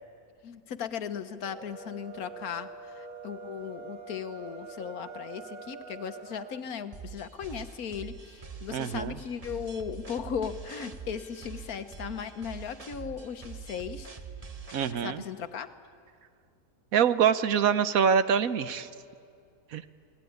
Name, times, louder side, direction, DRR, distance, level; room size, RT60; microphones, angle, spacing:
voice 1, 0.4-14.1 14.9-15.7, left 7 dB, 80° left, 9 dB, 1.5 m, -37 dB
sound 1, 1.3-6.6, right 4 dB, 60° right, 1.9 m, -44 dB
sound 2, 6.9-14.9, right 5 dB, 30° right, 1.0 m, -44 dB
voice 2, 8.7-9.2 14.7-15.2 16.9-18.9 19.7-19.8, right 7 dB, 75° right, 12 dB, 1.3 m, -25 dB
28.5 x 19.0 x 9.4 m, 2.3 s
omnidirectional pair, 1.5 m